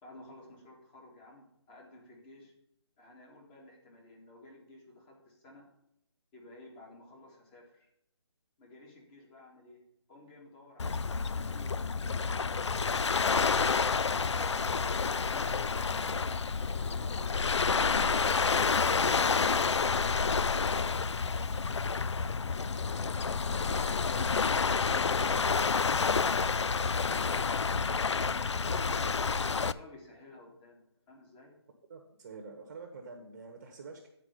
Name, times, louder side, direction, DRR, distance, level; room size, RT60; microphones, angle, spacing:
voice 1, 0.0-2.5 3.0-5.7 6.3-7.9 8.6-9.8 10.1-11.1 11.4-12.6 20.4-23.5 29.6-31.5, left 2 dB, 20° left, -1 dB, 2.1 m, -54 dB
Waves surf, 10.8-29.7, left 5 dB, 90° left, 0.4 m, -29 dB
voice 2, 31.9-34.1, right 4 dB, 30° right, 3 dB, 1.1 m, -47 dB
9.1 x 4.7 x 6.7 m, 0.79 s
figure-of-eight pair, 155°, 14 cm